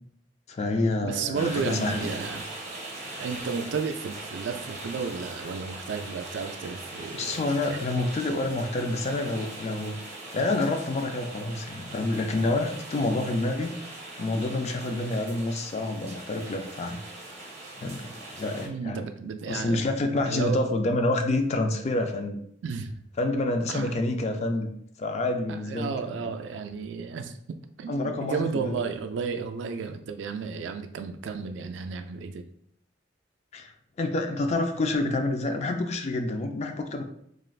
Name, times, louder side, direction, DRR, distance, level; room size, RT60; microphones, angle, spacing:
voice 1, 0.5-2.2 7.1-10.0 10.3-13.9 14.2-17.0 17.8-19.0 19.5-22.4 23.2-24.7 25.0-26.3 27.9-28.8 33.5-33.7 34.0-37.0, left 2 dB, 35° left, 5 dB, 0.3 m, -28 dB
voice 2, 1.0-2.5 3.2-7.4 7.7-7.8 18.6-19.8 20.2-20.6 22.6-22.9 23.7-24.0 25.5-27.4 27.8-32.4, right 5 dB, 75° right, 7 dB, 0.3 m, -33 dB
sound 1, 1.3-18.7, right 2 dB, 35° right, 0.7 m, -41 dB
3.2 x 2.4 x 2.3 m, 0.69 s
head